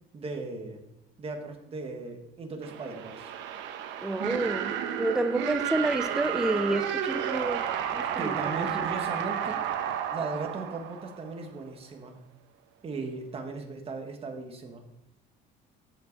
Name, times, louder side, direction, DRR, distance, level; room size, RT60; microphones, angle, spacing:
voice 1, 0.1-0.8 1.2-3.3 8.2-9.6 10.1-12.1 12.8-14.8, right 3 dB, 30° right, 1.6 m, -37 dB
sound 1, 2.6-11.5, right 9 dB, 80° right, 1.0 m, -32 dB
voice 2, 4.0-7.6 7.9-8.4, right 2 dB, 5° right, 0.4 m, -29 dB
14.0 x 5.5 x 4.1 m
cardioid pair, 135°, 19 cm